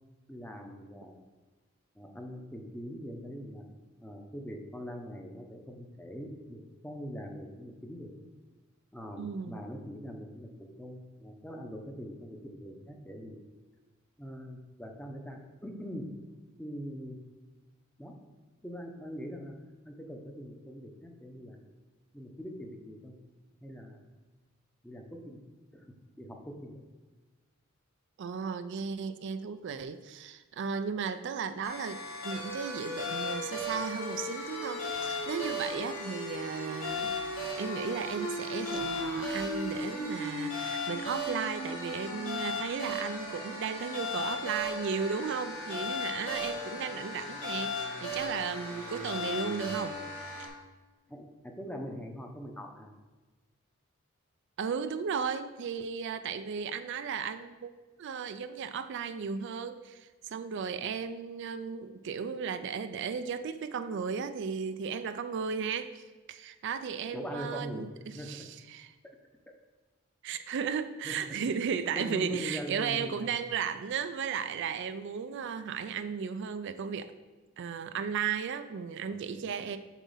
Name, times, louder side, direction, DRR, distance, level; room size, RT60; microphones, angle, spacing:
voice 1, 0.3-1.2 1.9-3.6 4.0-8.1 8.9-13.4 14.2-16.1 16.6-17.2 18.0-18.1 18.6-19.5 19.8-21.6 22.1-23.1 23.6-24.0 24.8-25.4 25.7-26.8 46.7-46.8 51.1-52.9 67.1-68.3 71.0-71.1 71.9-73.2 75.3-75.4 79.1-79.6, equal, 5° left, 2 dB, 0.8 m, -42 dB
voice 2, 9.2-9.6 28.2-37.2 37.6-50.0 54.6-57.7 58.0-68.9 70.2-77.1 77.6-79.8, right 6 dB, 60° right, 10 dB, 0.4 m, -35 dB
sound 1, 31.6-50.5, left 1 dB, 65° left, 1.9 m, -36 dB
7.2 x 4.2 x 5.6 m, 1.3 s
head